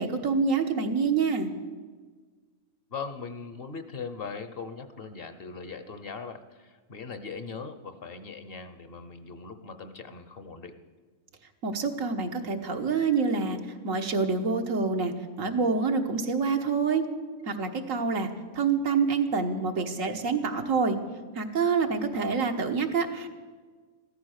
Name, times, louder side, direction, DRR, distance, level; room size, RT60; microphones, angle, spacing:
voice 1, 0.0-1.5 11.6-13.6 13.8-15.1 15.4-17.0 17.4-18.3 18.5-21.0 21.3-23.3, right 5 dB, 80° right, 4 dB, 1.7 m, -26 dB
voice 2, 2.9-10.8, left 5 dB, 50° left, 10 dB, 1.0 m, -40 dB
15.0 x 13.5 x 6.5 m, 1.4 s
omnidirectional pair, 1.4 m